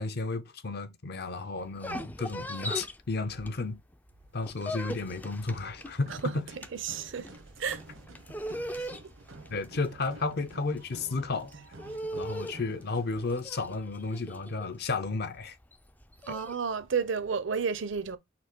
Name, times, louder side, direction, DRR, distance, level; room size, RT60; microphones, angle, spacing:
voice 1, 0.0-3.8 4.3-6.4 9.5-11.5 12.1-15.6, left 3 dB, 50° left, 0.6 m, -33 dB
sound 1, 1.6-3.9 4.2-16.6, equal, 10° left, 0.3 m, -40 dB
sound 2, 5.8-13.3, right 2 dB, 85° right, 1.0 m, -50 dB
voice 2, 6.7-7.3 7.6-7.8 8.6-8.9 16.3-18.2, right 6 dB, 70° right, 0.6 m, -32 dB
4.3 x 2.8 x 4.5 m
head